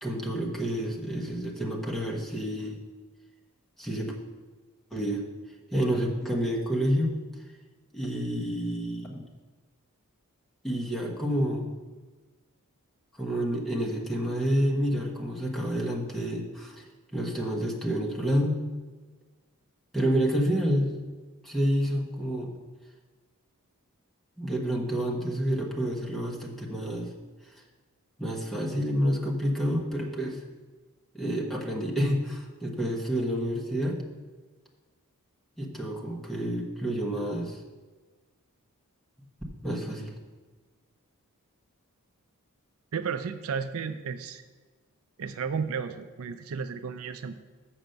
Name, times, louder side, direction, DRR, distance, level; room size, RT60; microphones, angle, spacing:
voice 1, 0.0-2.8 3.8-4.1 4.9-5.2 5.7-7.1 7.9-9.2 10.6-11.7 13.2-16.8 17.1-18.6 19.9-21.0 21.4-22.5 24.4-27.1 28.2-30.4 31.1-34.0 35.6-37.6 39.6-40.1, equal, ahead, -3 dB, 1.3 m, -29 dB
voice 2, 42.9-44.4 45.2-47.3, right 6 dB, 65° right, 10 dB, 0.5 m, -33 dB
7.1 x 6.1 x 6.6 m, 1.3 s
head